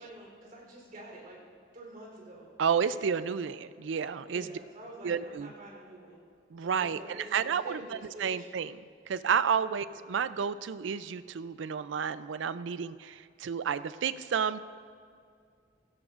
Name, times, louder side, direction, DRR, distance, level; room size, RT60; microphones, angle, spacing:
voice 1, 0.0-1.4 1.7-2.5 4.2-6.2 6.6-8.5 9.7-9.9, right 1 dB, 45° right, -3 dB, 3.5 m, -47 dB
voice 2, 2.6-4.5 5.0-5.5 6.5-7.8 8.2-14.6, right 7 dB, 80° right, 14 dB, 0.4 m, -31 dB
17.0 x 16.0 x 2.5 m, 2.2 s
head